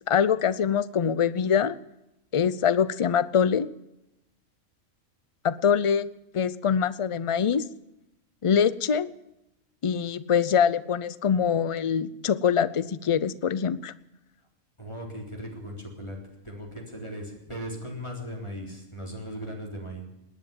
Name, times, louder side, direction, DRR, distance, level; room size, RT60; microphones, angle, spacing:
voice 1, 0.1-1.8 2.3-3.7 5.4-6.1 6.3-7.6 8.4-9.1 9.8-13.9, left 7 dB, 45° left, 16 dB, 0.4 m, -24 dB
voice 2, 14.8-16.2 16.4-20.1, equal, 20° left, 0 dB, 3.9 m, -38 dB
19.5 x 10.0 x 7.3 m, 0.91 s
omnidirectional pair, 1.4 m